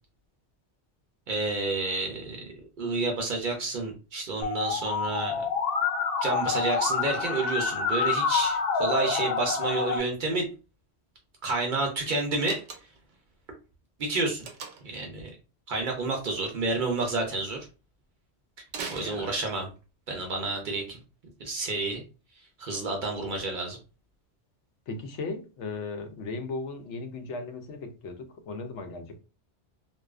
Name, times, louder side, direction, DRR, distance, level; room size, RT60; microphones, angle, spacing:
voice 1, 1.3-5.5 6.2-10.5 11.4-12.6 14.0-14.5 14.8-15.4 15.7-17.6 18.9-19.7 20.1-21.0 21.4-22.0 22.6-23.8, right 3 dB, 55° right, 0.6 m, -30 dB
Musical instrument, 4.4-10.0, left 5 dB, 60° left, 0.7 m, -27 dB
Slam, 12.4-13.2 14.4-15.0 18.7-19.8, right 5 dB, 85° right, 0.9 m, -40 dB
voice 2, 19.0-19.3 24.9-29.2, left 3 dB, 85° left, 0.9 m, -37 dB
2.5 x 2.3 x 2.3 m
omnidirectional pair, 1.2 m